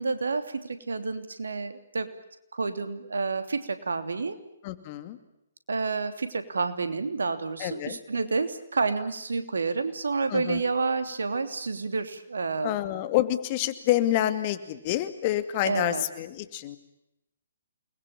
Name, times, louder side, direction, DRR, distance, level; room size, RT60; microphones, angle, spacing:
voice 1, 0.0-2.1 2.5-4.3 5.7-12.7 15.6-16.0, right 4 dB, 70° right, 9 dB, 3.2 m, -29 dB
voice 2, 4.6-5.2 7.6-8.0 10.3-10.6 12.6-16.8, left 13 dB, 35° left, 11 dB, 2.4 m, -28 dB
29.0 x 21.5 x 8.8 m, 0.84 s
figure-of-eight pair, 135°, 0 cm